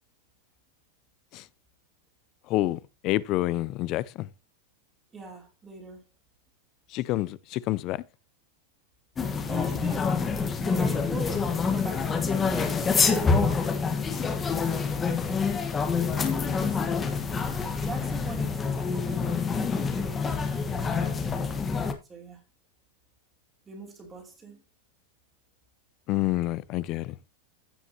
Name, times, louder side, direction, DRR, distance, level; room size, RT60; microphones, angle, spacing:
voice 1, 2.5-4.3 6.9-8.0 26.1-27.2, left 16 dB, 35° left, 0.5 m, -28 dB
voice 2, 5.1-6.0 9.4-10.2 10.4-15.1 16.0-17.3 17.8-19.4 19.9-21.7 22.1-22.4 23.7-24.6, right 3 dB, 15° right, 3.0 m, -42 dB
sound 1, 9.2-21.9, left 5 dB, 15° left, 1.3 m, -27 dB
15.5 x 6.0 x 2.9 m
supercardioid pair, 165°, 0 cm